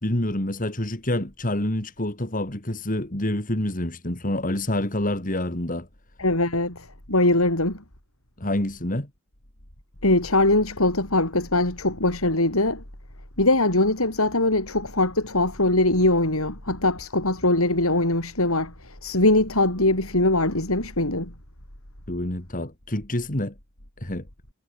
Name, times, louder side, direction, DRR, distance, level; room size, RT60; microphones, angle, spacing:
voice 1, 0.0-5.9 8.4-9.1 22.1-23.5 24.0-24.2, left 1 dB, 40° left, 3.0 m, -27 dB
voice 2, 6.2-7.8 10.0-12.8 13.4-21.3, left 2 dB, 85° left, 6.9 m, -22 dB
head